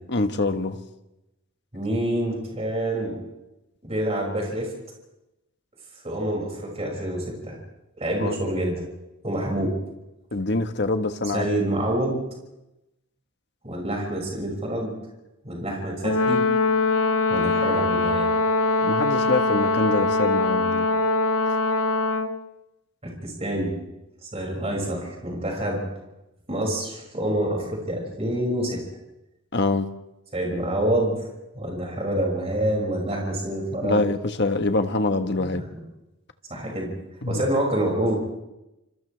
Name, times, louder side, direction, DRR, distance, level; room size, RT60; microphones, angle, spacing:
voice 1, 0.1-0.8 8.2-8.3 10.3-11.5 18.8-20.9 29.5-29.9 33.8-35.6 37.2-37.4, left 2 dB, 55° left, 7 dB, 1.3 m, -25 dB
voice 2, 1.7-3.2 3.8-4.7 6.0-7.6 8.0-8.8 9.2-9.8 11.3-12.2 13.6-14.9 15.4-16.4 17.3-18.3 23.0-23.7 24.2-25.8 26.5-28.8 30.3-31.2 31.5-34.0 35.4-35.6 36.5-36.9 37.3-38.2, right 1 dB, 30° right, -1 dB, 6.1 m, -27 dB
Brass instrument, 16.0-22.4, left 3 dB, 90° left, 0.9 m, -22 dB
29.5 x 27.5 x 3.4 m, 0.94 s
head